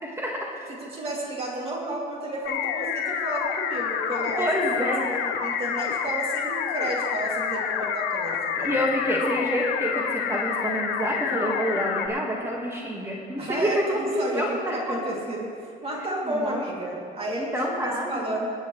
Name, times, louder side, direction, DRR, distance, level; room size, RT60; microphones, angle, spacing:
voice 1, 0.0-0.7 4.4-5.0 8.6-15.0 16.2-16.6 17.5-18.4, equal, 15° right, -2 dB, 1.7 m, -28 dB
voice 2, 0.8-4.5 5.0-8.8 13.4-15.5 15.8-17.5 17.8-18.5, right 1 dB, 35° right, -3 dB, 2.7 m, -32 dB
sound 1, 2.4-12.1, left 7 dB, 85° left, 0.9 m, -28 dB
24.0 x 8.5 x 3.2 m, 2.5 s
cardioid pair, 110°, 17 cm